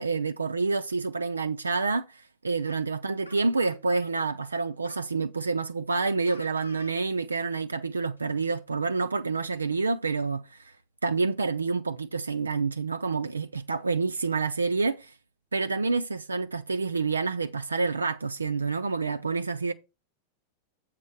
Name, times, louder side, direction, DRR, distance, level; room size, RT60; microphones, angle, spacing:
voice 1, 0.0-10.7 11.0-15.1 15.5-19.7, right 4 dB, 75° right, 0.5 m, -28 dB
sound 1, 2.6-2.8 3.3-4.3 4.8-5.1 6.3-6.9 7.3-7.4 8.2-8.6, equal, 90° left, 1.4 m, -49 dB
7.4 x 3.8 x 6.3 m
figure-of-eight pair, 90°, 0 cm